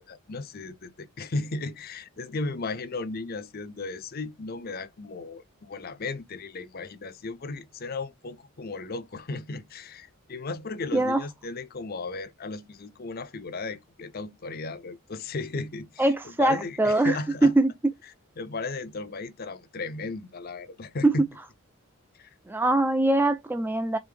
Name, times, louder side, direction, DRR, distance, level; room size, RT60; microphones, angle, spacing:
voice 1, 0.0-16.1 16.4-17.5 18.4-21.3 22.2-22.3, left 3 dB, 45° left, 0.6 m, -35 dB
voice 2, 10.9-11.2 16.0-17.2 17.4-17.9 21.0-21.3 22.5-24.0, right 2 dB, 10° right, 0.4 m, -22 dB
3.8 x 3.6 x 3.3 m
head